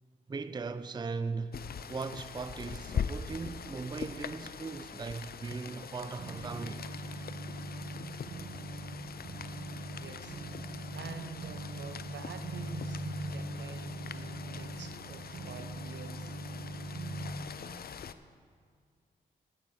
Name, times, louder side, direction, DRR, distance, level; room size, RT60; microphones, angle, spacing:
voice 1, 0.3-1.6 1.9-6.8, right 4 dB, 20° right, 0.4 m, -38 dB
Rain, 1.5-18.1, left 7 dB, 55° left, 0.5 m, -43 dB
sound 1, 6.2-17.3, right 1 dB, 85° right, 1.6 m, -41 dB
voice 2, 9.9-10.4 10.7-16.4, right 6 dB, 70° right, 0.9 m, -47 dB
13.0 x 9.0 x 4.3 m
supercardioid pair, 45°, 19 cm